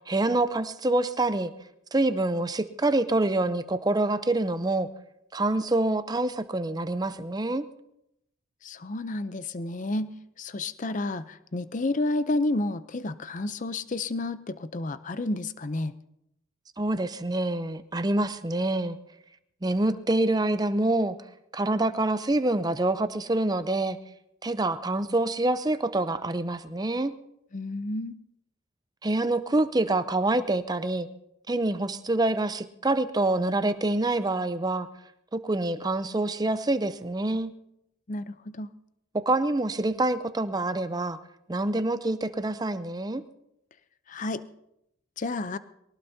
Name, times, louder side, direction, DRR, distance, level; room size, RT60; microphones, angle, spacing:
voice 1, 0.1-1.5 1.9-4.9 5.3-7.6 16.8-19.0 19.6-21.1 21.5-24.0 24.4-27.1 29.0-31.1 31.5-34.9 35.3-37.5 39.1-41.2 41.5-43.2, right 2 dB, 20° right, 12 dB, 0.5 m, -26 dB
voice 2, 8.6-15.9 27.5-28.2 38.1-38.7 44.1-44.5 45.2-45.6, left 2 dB, 35° left, 13 dB, 0.5 m, -31 dB
23.0 x 17.5 x 2.7 m, 0.80 s
head